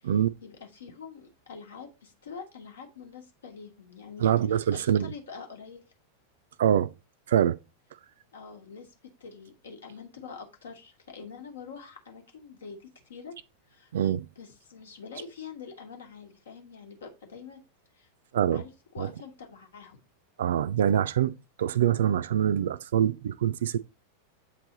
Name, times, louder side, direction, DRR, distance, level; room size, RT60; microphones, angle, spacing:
voice 1, 0.4-5.8 8.3-13.4 13.7-13.9 14.4-17.6 18.0-18.1 18.5-20.0, left 5 dB, 65° left, 1.2 m, -45 dB
voice 2, 4.2-5.1 6.6-6.9 7.3-7.6 13.9-14.3 18.3-18.6 19.0-19.1 20.4-23.8, right 9 dB, 60° right, 0.4 m, -25 dB
7.5 x 3.3 x 3.9 m
figure-of-eight pair, 90°, 0 cm